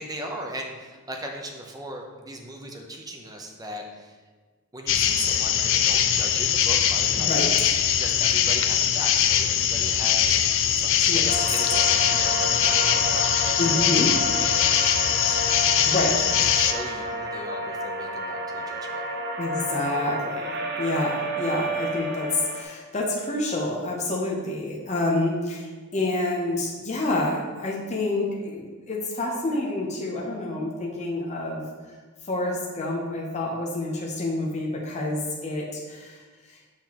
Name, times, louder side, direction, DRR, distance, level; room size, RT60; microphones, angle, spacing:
voice 1, 0.0-4.2 4.7-7.6 8.0-13.9 14.4-15.9 16.2-19.0, right 1 dB, 15° right, 1 dB, 0.7 m, -38 dB
sound 1, 4.9-16.7, left 9 dB, 60° left, 0.4 m, -22 dB
voice 2, 7.2-7.7 11.1-11.2 13.6-14.1 15.8-16.2 19.4-31.7 32.3-36.2 36.5-36.6, left 2 dB, 30° left, -2 dB, 0.8 m, -28 dB
sound 2, 11.3-22.6, right 1 dB, 50° right, 0.7 m, -31 dB
6.6 x 5.7 x 3.0 m, 1.4 s
head